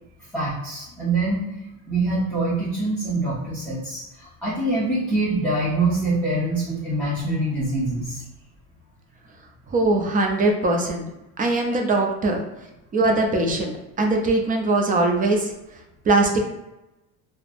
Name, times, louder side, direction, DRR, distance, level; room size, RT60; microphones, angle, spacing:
voice 1, 0.3-1.4 1.9-8.2 11.6-11.7, right 2 dB, 5° left, -9 dB, 0.7 m, -24 dB
voice 2, 9.7-11.1 11.4-12.4 12.9-15.5 16.0-16.4, right 2 dB, 25° right, 2 dB, 0.3 m, -21 dB
3.2 x 2.0 x 2.4 m, 0.97 s
supercardioid pair, 110°, 39 cm